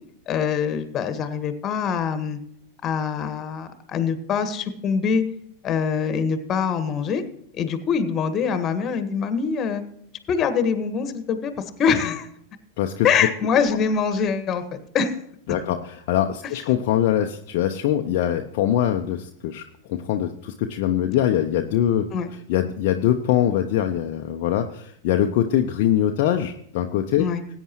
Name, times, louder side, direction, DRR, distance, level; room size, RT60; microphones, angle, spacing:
voice 1, 0.3-2.4 2.8-5.2 5.6-7.2 7.6-9.8 10.3-11.5 11.8-12.3 13.0-15.2 22.1-22.3 27.2-27.4, left 6 dB, 30° left, 10 dB, 1.6 m, -24 dB
voice 2, 12.8-13.1 15.5-19.6 19.9-22.1 22.5-27.3, left 11 dB, 50° left, 4 dB, 0.8 m, -23 dB
19.5 x 9.2 x 3.1 m, 0.69 s
figure-of-eight pair, 90°, 0 cm